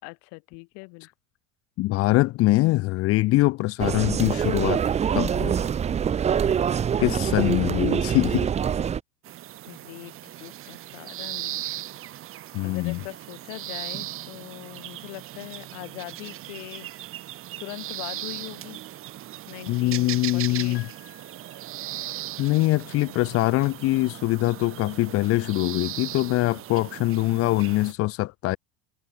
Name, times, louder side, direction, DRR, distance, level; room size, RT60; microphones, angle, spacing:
voice 1, 0.0-1.1 3.8-4.1 7.0-7.4 9.7-11.7 12.2-16.9 17.1-18.8 19.5-20.8, left 37 dB, 65° left, 5.0 m, -42 dB
voice 2, 1.8-4.8 5.1-5.6 7.0-8.5 12.5-13.0 19.7-20.9 22.4-28.6, left 19 dB, 50° left, 0.8 m, -23 dB
sound 1, 3.8-9.0, right 8 dB, 20° right, 0.6 m, -24 dB
sound 2, 9.2-27.9, right 14 dB, 45° right, 2.0 m, -38 dB
Piano, 20.7-22.4, left 13 dB, 90° left, 4.0 m, -52 dB
supercardioid pair, 100°, 31 cm